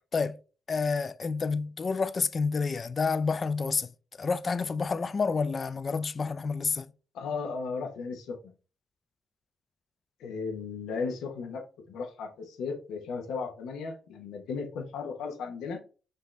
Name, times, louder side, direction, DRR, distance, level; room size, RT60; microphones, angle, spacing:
voice 1, 0.7-6.9, left 4 dB, 35° left, 0.3 m, -29 dB
voice 2, 7.1-8.4 10.2-11.6 11.9-15.8, left 5 dB, 80° left, 0.8 m, -35 dB
5.4 x 2.6 x 3.2 m
cardioid pair, 90°, 0 cm